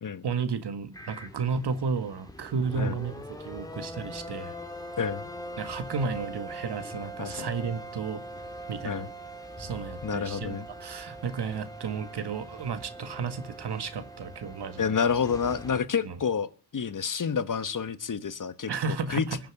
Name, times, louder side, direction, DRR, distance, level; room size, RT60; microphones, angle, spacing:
voice 1, 0.2-4.5 5.6-8.2 8.7-9.1 9.6-15.0 16.0-16.2 18.7-19.4, right 5 dB, 85° right, 1.9 m, -33 dB
sound 1, 0.9-15.8, right 1 dB, 10° left, 2.3 m, -42 dB
voice 2, 5.0-5.3 7.2-7.5 8.8-9.1 10.0-10.7 14.8-16.5 16.7-18.7 19.1-19.2, left 6 dB, 50° left, 1.2 m, -29 dB
20.5 x 7.4 x 9.5 m
wide cardioid pair, 110°, 40 cm